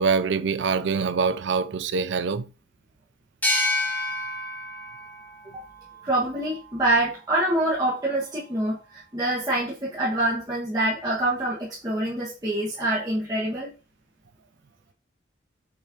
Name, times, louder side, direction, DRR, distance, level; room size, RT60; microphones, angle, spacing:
voice 1, 0.0-2.5, right 5 dB, 70° right, 0.4 m, -24 dB
sound 1, 3.4-6.8, left 1 dB, 10° left, 2.0 m, -29 dB
voice 2, 6.0-13.7, right 1 dB, 20° right, 1.6 m, -26 dB
6.7 x 6.2 x 2.9 m
head